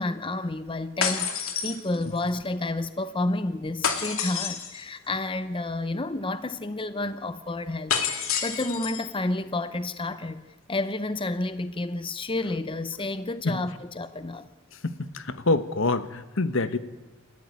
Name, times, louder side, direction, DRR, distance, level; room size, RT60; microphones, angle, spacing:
voice 1, 0.0-14.5, left 2 dB, 25° left, 0.8 m, -30 dB
sound 1, 1.0-2.3 3.8-4.8 7.9-9.1, left 7 dB, 85° left, 2.6 m, -28 dB
voice 2, 14.8-16.8, left 2 dB, 65° left, 1.2 m, -26 dB
29.0 x 13.5 x 9.6 m
head